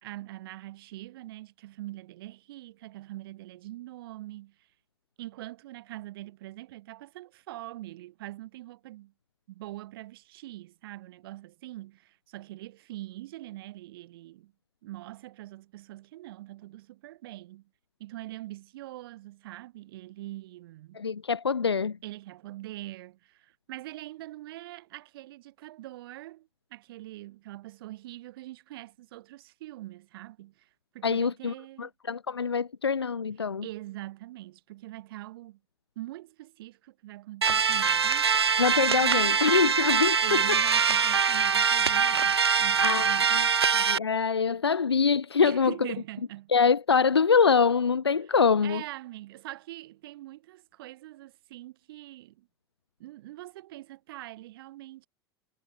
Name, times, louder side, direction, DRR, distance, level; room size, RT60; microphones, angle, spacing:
voice 1, 0.0-4.7 5.2-9.1 9.5-14.5 14.8-17.7 18.0-21.0 22.0-30.7 30.9-31.9 33.6-35.6 36.0-38.3 39.0-39.4 40.2-43.8 45.4-46.5 48.6-52.5 53.0-55.1, right 16 dB, 65° right, 4.1 m, -43 dB
voice 2, 20.9-22.0 31.0-33.7 38.6-40.6 42.8-43.5 43.7-45.7 46.5-48.8, left 5 dB, 90° left, 0.5 m, -25 dB
sound 1, 37.4-44.0, right 6 dB, 85° right, 0.7 m, -23 dB
figure-of-eight pair, 80°, 13 cm